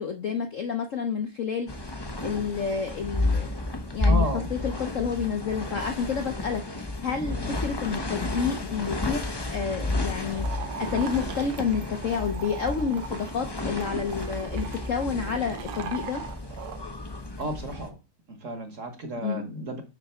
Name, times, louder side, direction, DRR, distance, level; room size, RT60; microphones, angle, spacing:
voice 1, 0.0-3.5 3.9-16.2 19.2-19.4, left 6 dB, 60° left, 5 dB, 0.8 m, -30 dB
sound 1, 1.7-17.9, left 2 dB, 40° left, 0.3 m, -31 dB
voice 2, 4.1-4.5 7.3-7.5 17.4-18.0 18.3-19.8, right 2 dB, 45° right, 6 dB, 1.3 m, -33 dB
sound 2, 10.3-16.8, right 8 dB, 65° right, 1.3 m, -40 dB
6.7 x 5.8 x 4.3 m, 0.28 s
omnidirectional pair, 2.2 m